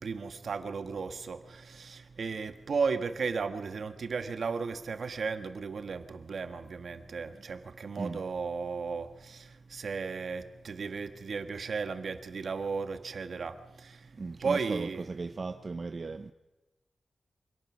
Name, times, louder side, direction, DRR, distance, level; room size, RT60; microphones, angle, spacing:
voice 1, 0.0-14.1 14.4-15.1, right 5 dB, 60° right, 1.4 m, -35 dB
voice 2, 14.2-16.3, right 4 dB, 40° right, 0.6 m, -37 dB
25.5 x 18.0 x 6.2 m
wide cardioid pair, 170°, 0 cm